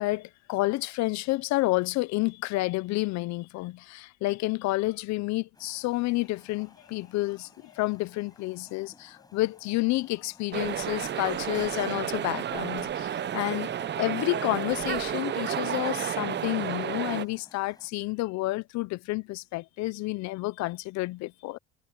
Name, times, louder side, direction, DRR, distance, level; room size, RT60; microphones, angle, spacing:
voice 1, 0.0-21.6, left 20 dB, 60° left, 0.8 m, -30 dB
sound 1, 5.5-17.9, left 2 dB, 10° left, 5.3 m, -58 dB
sound 2, 10.5-17.2, right 10 dB, 35° right, 0.8 m, -31 dB
supercardioid pair, 90°, 31 cm